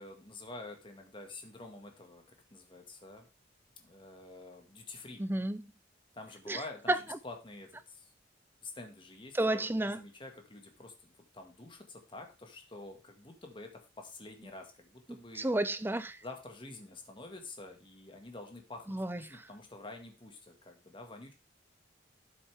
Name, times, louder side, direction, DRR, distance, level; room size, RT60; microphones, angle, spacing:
voice 1, 0.0-3.3 3.8-5.2 6.1-8.1 8.6-15.5 16.2-21.3, left 2 dB, 25° left, 1.8 m, -48 dB
voice 2, 5.2-5.7 6.5-6.6 6.9-7.0 9.3-10.0 15.4-16.2 18.9-19.4, right 1 dB, 10° right, 0.5 m, -31 dB
12.5 x 7.2 x 3.5 m
head